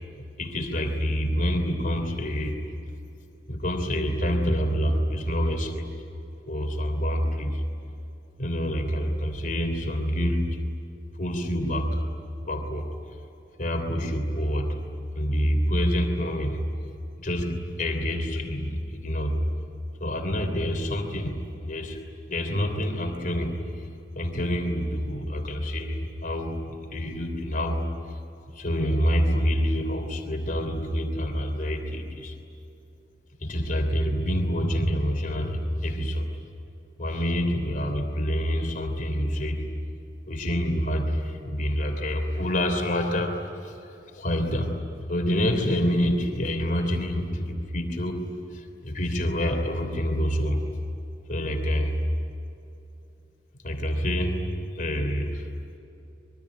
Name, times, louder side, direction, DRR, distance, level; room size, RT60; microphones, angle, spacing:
voice 1, 0.4-2.6 3.5-5.9 6.5-7.6 8.4-10.6 11.2-12.0 12.4-12.9 13.6-14.8 15.1-16.6 17.2-19.4 20.0-22.0 22.3-23.9 24.1-28.2 28.5-32.4 33.4-36.3 37.0-39.7 40.3-48.2 48.5-50.6 51.3-52.0 53.6-55.5, equal, 50° left, 4 dB, 3.1 m, -27 dB
26.0 x 23.0 x 9.7 m, 2.8 s
head